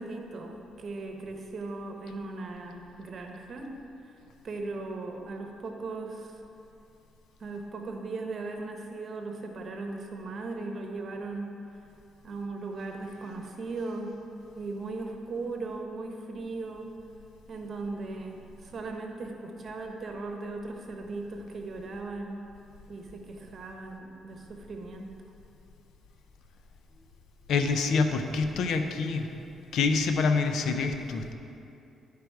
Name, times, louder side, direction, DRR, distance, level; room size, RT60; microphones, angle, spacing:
voice 1, 0.0-3.7 4.4-6.4 7.4-11.5 12.2-14.2 14.6-16.9 17.5-22.4 22.9-25.1, right 3 dB, 50° right, 3 dB, 1.0 m, -38 dB
voice 2, 27.5-29.3 29.7-31.3, left 4 dB, 75° left, 6 dB, 0.6 m, -26 dB
11.5 x 5.1 x 4.6 m, 2.8 s
cardioid pair, 80°, 0 cm